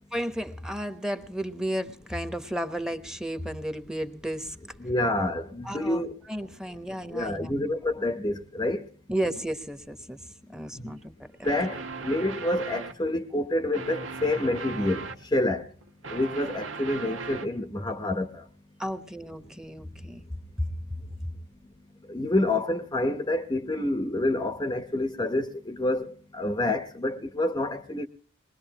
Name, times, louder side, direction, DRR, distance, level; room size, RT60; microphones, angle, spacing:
voice 1, 0.1-4.8 5.6-6.0 6.3-7.6 9.1-11.5 18.8-20.3 20.6-20.7, equal, 5° right, 1.1 m, -33 dB
voice 2, 4.8-6.2 7.1-8.9 10.7-10.9 11.4-15.7 16.1-18.5 22.1-28.1, left 1 dB, 20° left, 0.9 m, -28 dB
sound 1, 11.4-13.1 13.7-15.2 15.8-17.6, right 4 dB, 85° right, 2.0 m, -37 dB
22.0 x 21.0 x 3.0 m
head